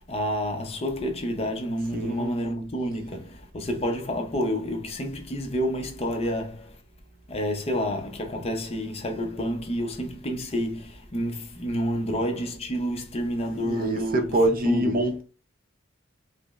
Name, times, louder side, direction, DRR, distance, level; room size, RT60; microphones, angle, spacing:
voice 1, 0.1-6.8 7.3-14.4 14.6-14.9, equal, 30° left, 0.6 m, -29 dB
voice 2, 1.9-2.3 13.6-15.2, right 1 dB, 45° right, 0.6 m, -25 dB
4.9 x 2.0 x 2.4 m
head